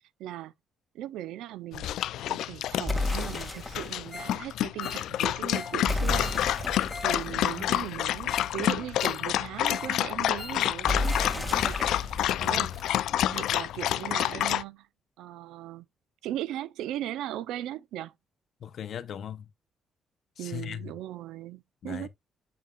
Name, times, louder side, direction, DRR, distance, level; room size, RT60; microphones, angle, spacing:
voice 1, 0.2-0.5 0.9-2.0 2.3-6.4 6.6-14.9 15.2-15.8 16.2-18.1 20.4-22.1, right 13 dB, 90° right, 0.5 m, -38 dB
Dog, 1.7-14.6, left 12 dB, 80° left, 0.3 m, -29 dB
sound 1, 2.9-4.1 5.9-8.6 10.9-13.6, left 2 dB, 5° left, 1.9 m, -33 dB
Ringtone, 4.1-4.4 4.7-7.2 7.4-7.5 8.0-8.1 8.3-8.6 8.8-10.0 10.2-11.4 11.6-11.7 12.2-12.3, left 3 dB, 35° left, 1.7 m, -43 dB
voice 2, 7.5-7.9 12.4-12.7 18.6-19.5 20.4-20.9 21.8-22.1, left 9 dB, 65° left, 0.7 m, -39 dB
7.4 x 5.9 x 2.3 m
cardioid pair, 90°, 0 cm